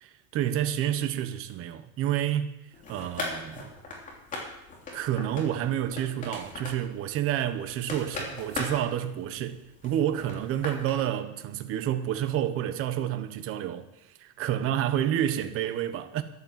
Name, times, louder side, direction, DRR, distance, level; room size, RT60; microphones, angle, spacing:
voice 1, 0.0-2.5 2.9-3.7 4.9-9.6 9.8-13.9 14.2-16.2, right 11 dB, 30° right, 1.1 m, -29 dB
sound 1, 2.7-11.1, left 2 dB, 20° left, 3.2 m, -40 dB
13.5 x 11.0 x 7.6 m
cardioid pair, 170°, 41 cm